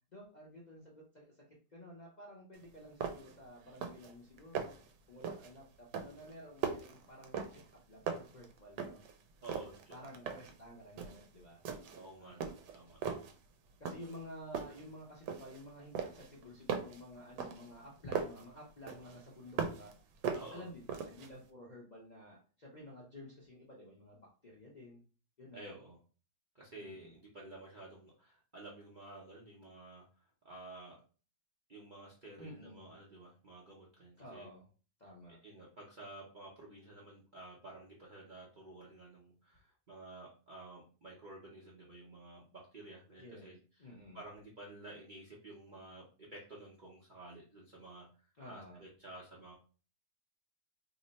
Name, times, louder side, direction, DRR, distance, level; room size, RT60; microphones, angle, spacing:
voice 1, 0.1-1.3 1.7-4.7 5.1-7.6 7.9-9.0 9.9-11.6 12.2-12.5 13.8-19.9 20.3-25.0 25.4-25.7 26.8-27.1 32.4-32.9 34.2-34.7 35.0-35.4 43.2-43.5 43.8-44.2 48.4-48.8, left 1 dB, 40° left, -4 dB, 0.6 m, -52 dB
sound 1, 2.6-2.7 3.0-3.4 3.7-4.1 4.4-4.9 5.2-5.6 5.9-7.8 8.1-9.1 9.4-10.6 11.0-11.3 11.7-12.1 12.4-13.4 13.9-14.2 14.5-15.6 16.0-18.5 18.9-19.9 20.2-21.3, right 6 dB, 90° right, 1.2 m, -39 dB
voice 2, 9.4-10.0 11.9-13.0 20.3-20.7 25.5-26.0 26.5-30.0 30.4-31.0 31.7-34.5 35.4-48.1 48.4-49.5, right 2 dB, 45° right, -4 dB, 0.6 m, -52 dB
2.9 x 2.1 x 4.0 m, 0.37 s
omnidirectional pair, 1.8 m